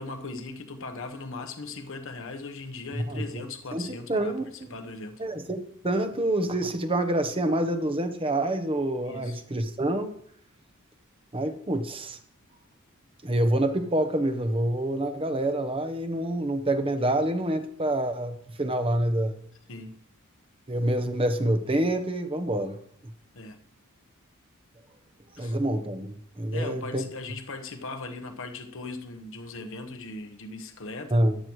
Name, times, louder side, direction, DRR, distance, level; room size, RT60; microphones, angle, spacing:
voice 1, 0.0-4.4 4.7-5.2 9.0-9.4 19.7-19.9 23.3-23.6 25.4-25.6 26.5-31.2, left 3 dB, 60° left, 1.1 m, -38 dB
voice 2, 3.0-3.4 3.7-4.7 5.2-10.1 11.3-12.2 13.2-19.4 20.7-22.8 25.4-27.1 31.1-31.4, right 1 dB, 25° right, 0.9 m, -27 dB
14.5 x 11.0 x 3.2 m
head